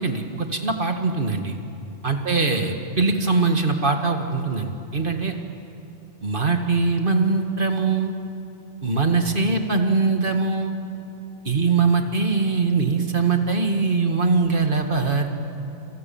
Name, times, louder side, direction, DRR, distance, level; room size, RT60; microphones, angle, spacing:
voice 1, 0.0-1.6 2.0-5.4 6.2-8.1 8.8-10.7 11.5-15.3, right 4 dB, 45° right, 4 dB, 2.1 m, -22 dB
30.0 x 26.0 x 7.2 m, 2.9 s
omnidirectional pair, 1.2 m